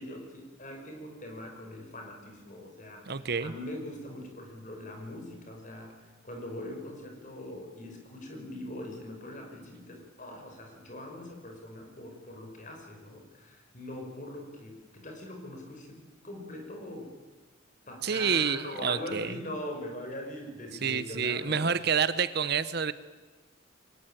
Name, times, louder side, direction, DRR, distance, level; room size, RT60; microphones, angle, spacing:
voice 1, 0.0-17.2 17.9-21.9, left 1 dB, 40° left, 3 dB, 5.7 m, -42 dB
voice 2, 3.1-3.5 18.0-19.3 20.8-22.9, right 6 dB, 50° right, 14 dB, 0.8 m, -28 dB
23.0 x 20.0 x 9.1 m, 1.3 s
head